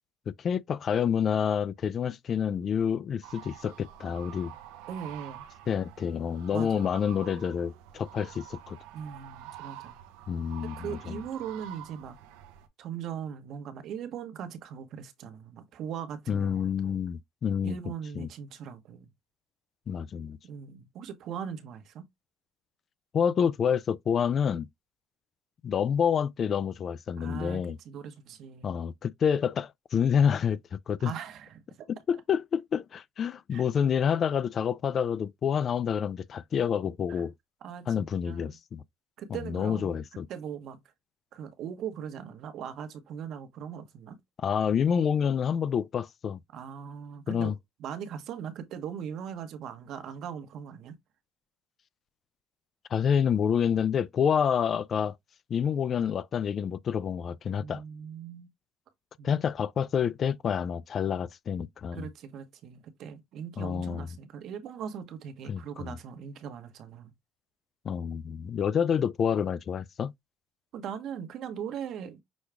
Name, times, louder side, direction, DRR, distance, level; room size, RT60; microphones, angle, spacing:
voice 1, 0.3-4.5 5.7-8.8 10.3-11.2 16.3-17.8 18.2-18.3 19.9-20.4 23.1-24.7 25.6-27.8 28.6-31.1 32.1-37.3 37.9-38.8 39.5-40.3 44.4-46.4 47.3-47.5 52.9-55.2 55.5-57.8 59.2-62.1 63.6-64.1 65.5-66.0 67.8-70.1, left 7 dB, 45° left, 0.3 m, -28 dB
sound 1, 3.2-12.7, right 11 dB, 90° right, 0.7 m, -47 dB
voice 2, 4.9-5.4 6.5-6.9 8.9-10.0 10.6-12.2 12.8-17.0 17.6-19.1 20.4-22.0 27.1-28.8 31.0-31.9 33.5-33.6 37.1-37.2 37.6-38.6 39.2-40.0 40.3-40.8 41.3-44.2 46.5-47.5 47.8-50.9 57.5-58.5 59.2-59.4 61.9-67.1 70.7-72.2, right 8 dB, 60° right, 1.0 m, -40 dB
6.2 x 2.4 x 3.4 m
cardioid pair, 105°, 0 cm